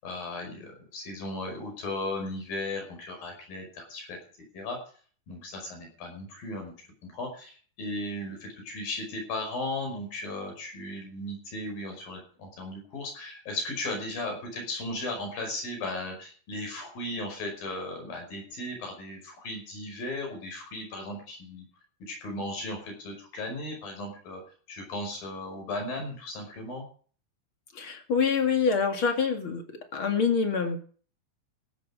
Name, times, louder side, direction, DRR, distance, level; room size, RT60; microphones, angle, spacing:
voice 1, 0.0-4.2 4.5-4.8 5.3-6.7 7.0-21.6 22.0-24.4 24.7-26.9, left 2 dB, 65° left, 3 dB, 7.0 m, -36 dB
voice 2, 27.7-29.6 29.9-30.8, left 5 dB, 40° left, 6 dB, 2.6 m, -25 dB
15.0 x 13.0 x 5.0 m, 0.42 s
omnidirectional pair, 4.4 m